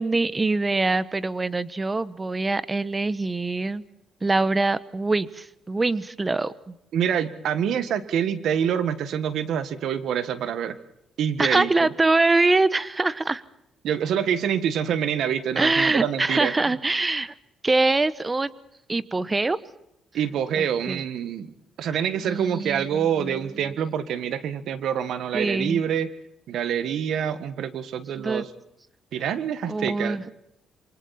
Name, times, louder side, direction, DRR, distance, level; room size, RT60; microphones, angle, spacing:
voice 1, 0.0-3.8 4.2-6.7 11.4-13.4 15.6-17.3 17.6-18.5 18.9-19.6 20.6-21.0 22.2-23.7 25.3-25.8 28.2-28.4 29.7-30.2, right 3 dB, 20° right, 17 dB, 1.1 m, -24 dB
voice 2, 6.9-10.8 11.2-11.9 13.8-16.5 20.1-21.5 21.8-26.1 26.5-28.5 29.1-30.2, right 8 dB, 75° right, 13 dB, 1.6 m, -26 dB
28.0 x 24.5 x 4.3 m, 0.82 s
cardioid pair, 90°, 0 cm